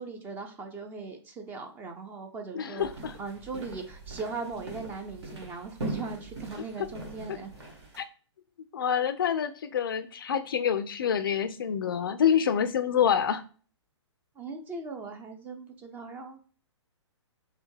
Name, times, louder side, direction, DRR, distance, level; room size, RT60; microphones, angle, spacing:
voice 1, 0.0-2.9 3.2-7.5 14.4-16.4, right 4 dB, 10° right, 4 dB, 0.5 m, -39 dB
voice 2, 2.5-3.2 7.3-7.4 8.0-8.1 8.7-13.4, left 8 dB, 50° left, 12 dB, 0.4 m, -27 dB
sound 1, 2.8-8.0, right 2 dB, 65° right, 1.6 m, -41 dB
4.1 x 2.1 x 3.2 m, 0.41 s
figure-of-eight pair, 115°, 15 cm